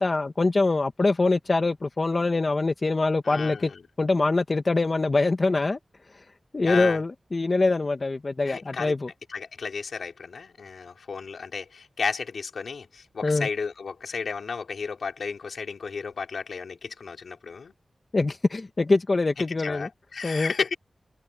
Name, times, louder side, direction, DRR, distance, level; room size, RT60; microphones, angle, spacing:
voice 1, 0.0-3.7 4.0-5.8 6.5-9.1 13.2-13.5 18.1-19.9 20.2-20.5, left 3 dB, 40° left, 1.2 m, -24 dB
voice 2, 3.2-3.8 6.7-7.0 8.4-8.9 9.3-17.7 19.6-20.7, left 5 dB, 85° left, 4.6 m, -33 dB
wide cardioid pair, 95°, 0 cm